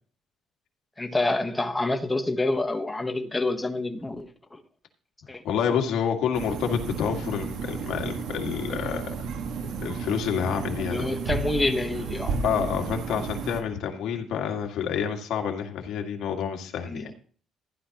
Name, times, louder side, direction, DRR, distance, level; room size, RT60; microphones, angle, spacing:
voice 1, 1.0-4.6 5.3-5.4 5.7-5.8 10.8-12.4 16.9-17.1, left 2 dB, 10° left, 1.2 m, -28 dB
voice 2, 5.4-9.1 9.8-11.1 12.4-17.1, left 7 dB, 75° left, 2.0 m, -28 dB
sound 1, 6.3-13.6, right 5 dB, 75° right, 1.6 m, -32 dB
15.0 x 11.5 x 3.0 m
cardioid pair, 130°, 0 cm